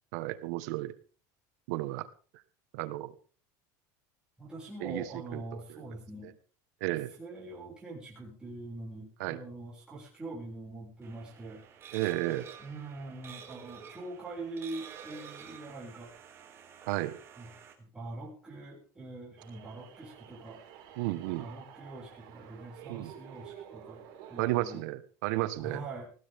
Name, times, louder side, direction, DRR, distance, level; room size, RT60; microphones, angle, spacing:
voice 1, 0.1-0.9 1.7-2.1 2.7-3.1 4.8-5.0 5.3-5.6 6.8-7.1 9.2-9.4 11.9-12.5 16.9-17.2 21.0-21.5 22.9-23.1 24.4-25.8, right 17 dB, 75° right, 11 dB, 1.5 m, -32 dB
voice 2, 4.4-6.3 6.8-11.6 12.6-16.1 17.4-17.5 17.8-20.6 21.4-24.8 25.6-26.1, right 2 dB, 10° right, -5 dB, 6.6 m, -43 dB
sound 1, 11.0-17.7, right 7 dB, 25° right, 4.0 m, -50 dB
sound 2, 19.4-24.8, right 9 dB, 55° right, 6.9 m, -50 dB
20.0 x 16.0 x 3.7 m, 0.39 s
cardioid pair, 150°, 9 cm